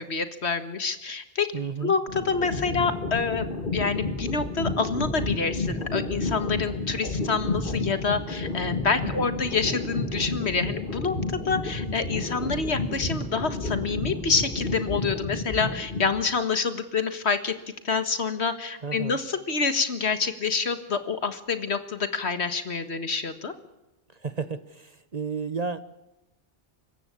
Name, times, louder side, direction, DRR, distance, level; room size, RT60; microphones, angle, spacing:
voice 1, 0.0-1.5 1.8-3.5 3.7-17.5 17.8-23.5, left 5 dB, 65° left, 10 dB, 1.9 m, -27 dB
voice 2, 1.5-1.9 9.0-9.3 18.8-19.2 24.2-25.8, right 5 dB, 40° right, 13 dB, 1.0 m, -32 dB
sound 1, 2.1-16.3, left 2 dB, 50° left, 2.1 m, -31 dB
25.5 x 14.5 x 8.6 m, 0.97 s
omnidirectional pair, 1.2 m